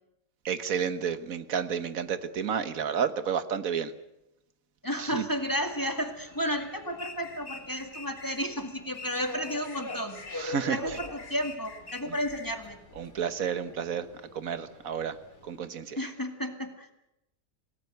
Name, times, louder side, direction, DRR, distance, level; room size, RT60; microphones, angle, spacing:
voice 1, 0.4-3.9 5.0-5.2 10.3-11.0 12.1-12.2 13.0-14.1 14.3-15.2 15.4-16.0, right 7 dB, 60° right, 12 dB, 1.6 m, -31 dB
voice 2, 4.8-10.2 10.7-12.8 16.0-16.9, equal, 10° left, 5 dB, 2.1 m, -32 dB
Subway metro underground, 5.0-15.6, left 2 dB, 85° left, 3.8 m, -44 dB
sound 1, 7.0-8.5 8.9-10.5 10.9-12.5, left 3 dB, 60° left, 3.3 m, -45 dB
28.0 x 18.5 x 8.0 m, 0.89 s
omnidirectional pair, 1.7 m